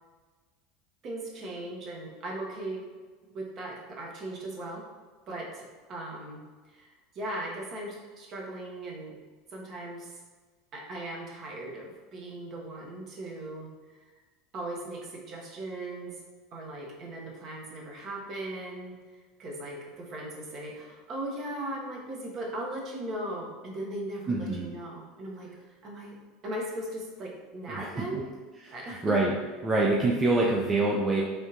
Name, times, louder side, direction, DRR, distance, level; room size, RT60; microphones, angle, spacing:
voice 1, 1.0-2.9 3.3-4.8 5.3-9.2 9.5-10.2 10.7-14.0 14.5-16.2 16.5-26.2 26.4-28.2 28.7-29.2, right 1 dB, 45° right, -2 dB, 0.9 m, -38 dB
voice 2, 24.3-24.7 27.7-28.2 29.0-29.3 29.6-31.2, right 2 dB, 25° right, -3 dB, 0.4 m, -25 dB
3.4 x 2.7 x 2.8 m, 1.4 s
hypercardioid pair, 85°, 0 cm